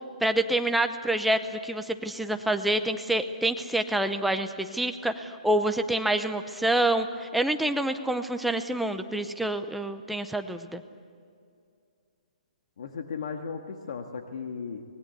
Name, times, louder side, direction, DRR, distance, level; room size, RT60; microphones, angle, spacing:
voice 1, 0.2-10.8, right 1 dB, ahead, 7 dB, 0.7 m, -27 dB
voice 2, 12.8-14.8, left 5 dB, 55° left, 4 dB, 1.7 m, -36 dB
24.5 x 20.0 x 8.2 m, 2.4 s
hypercardioid pair, 165°, 4 cm